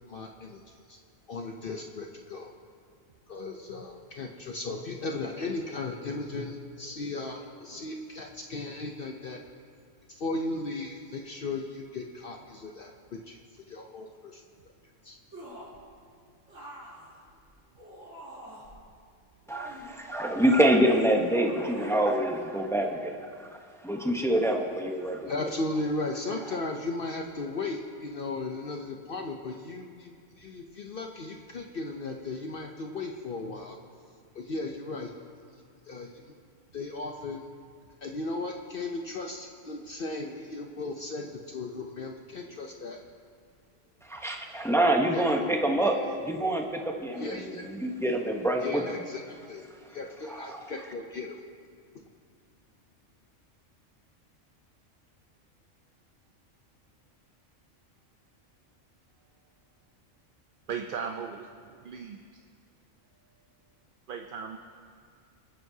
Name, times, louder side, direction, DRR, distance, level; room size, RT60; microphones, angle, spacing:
voice 1, 0.1-1.0 1.3-2.5 3.3-9.4 10.1-13.4 13.7-14.4 15.0-15.2 25.3-33.8 34.3-35.1 35.9-36.3 36.7-37.5 38.0-43.0 45.1-45.5 47.2-47.6 48.6-49.2 49.5-51.4, left 3 dB, 55° left, 2 dB, 0.8 m, -36 dB
male grunts, 15.3-15.8 16.5-18.8 19.5-20.6 21.1-22.0 22.3-22.4, equal, 80° right, 3.7 m, -47 dB
voice 2, 19.5-23.3 23.8-25.3 44.1-48.8 50.3-50.6, right 1 dB, 5° left, 2 dB, 0.7 m, -26 dB
voice 3, 60.7-62.2 64.1-64.6, right 6 dB, 55° right, 4 dB, 0.7 m, -37 dB
26.0 x 9.3 x 2.7 m, 2.2 s
omnidirectional pair, 1.3 m